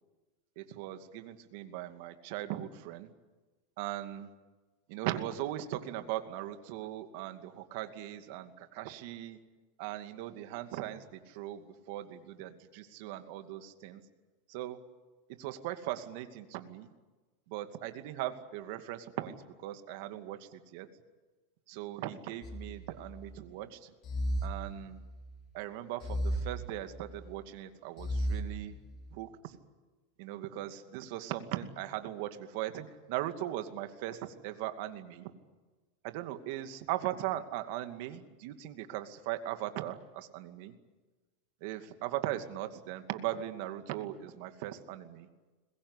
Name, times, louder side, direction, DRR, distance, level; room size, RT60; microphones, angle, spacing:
voice 1, 0.6-3.1 3.8-4.3 4.9-9.4 9.8-14.0 14.5-14.8 15.4-16.9 17.5-20.9 21.7-23.9 24.4-25.0 25.5-28.8 29.1-29.6 30.2-35.3 36.0-40.7 41.6-45.3, right 13 dB, 60° right, 8 dB, 2.4 m, -39 dB
sound 1, 22.4-23.4 24.0-25.3 26.0-27.3 28.0-29.1, equal, 35° left, 3.8 m, -36 dB
22.5 x 21.0 x 9.9 m, 1.2 s
supercardioid pair, 140°, 0 cm